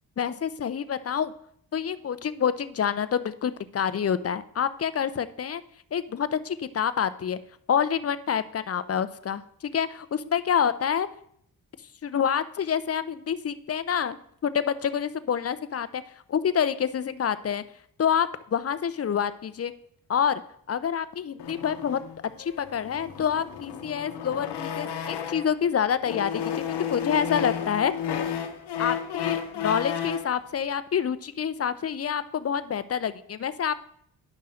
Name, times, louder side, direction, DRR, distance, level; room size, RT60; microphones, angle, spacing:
voice 1, 0.2-1.3 1.7-5.6 5.9-7.4 7.7-11.1 12.0-14.2 14.4-16.0 16.3-17.6 18.0-19.7 20.1-20.4 20.7-22.0 22.4-27.9 28.8-33.8, left 8 dB, 35° left, 14 dB, 0.6 m, -27 dB
sound 1, 21.4-25.6 26.0-30.3, left 8 dB, 80° left, 0.9 m, -32 dB
10.0 x 5.6 x 3.7 m, 0.68 s
cardioid pair, 60°, 40 cm